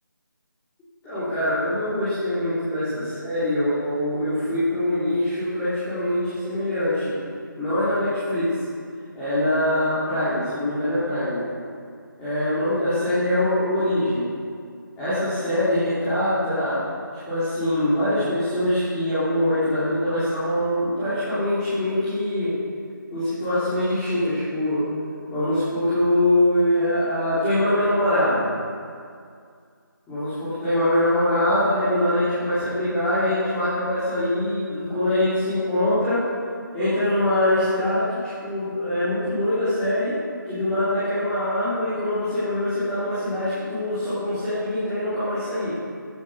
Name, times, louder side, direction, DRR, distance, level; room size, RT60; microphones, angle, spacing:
voice 1, 1.0-7.2 7.6-8.5 9.1-11.4 12.2-14.3 15.0-16.8 17.2-22.5 23.1-24.8 25.3-28.5 30.1-36.2 36.7-40.1 40.4-45.8, left 1 dB, 10° left, -16 dB, 3.2 m, -23 dB
16.0 x 8.1 x 6.9 m, 2.2 s
figure-of-eight pair, 165°, 11 cm